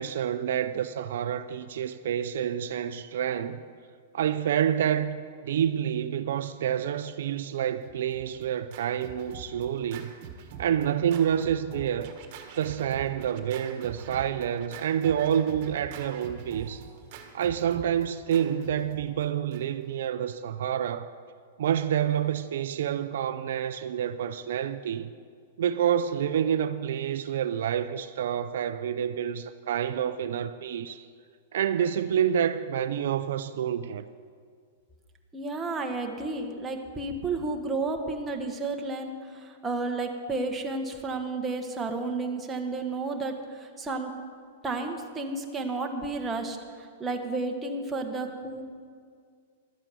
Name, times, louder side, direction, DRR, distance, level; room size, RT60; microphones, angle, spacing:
voice 1, 0.0-3.6 4.1-5.2 5.4-10.1 10.6-12.1 12.6-16.9 17.3-21.1 21.6-25.1 25.6-31.1 31.5-34.0, right 9 dB, 70° right, 0.5 m, -28 dB
Scratching (performance technique), 7.8-19.9, right 6 dB, 45° right, 1.6 m, -45 dB
voice 2, 35.3-44.1 44.6-48.6, right 3 dB, 15° right, 1.3 m, -32 dB
12.5 x 8.9 x 6.8 m
hypercardioid pair, 140°, 0 cm